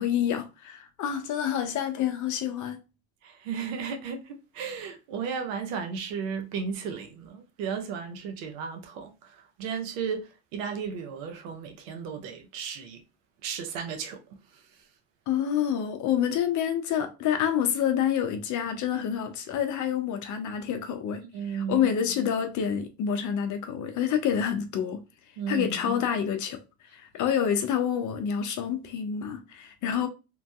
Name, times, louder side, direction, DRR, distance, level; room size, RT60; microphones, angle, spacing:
voice 1, 0.0-2.8 15.3-21.2 21.5-25.0 25.5-26.6 26.9-30.1, left 9 dB, 50° left, 0.6 m, -28 dB
voice 2, 3.2-13.0 13.4-14.9 21.3-21.9 25.4-25.8, right 6 dB, 80° right, 0.8 m, -35 dB
3.1 x 2.6 x 2.3 m
supercardioid pair, 85°, 39 cm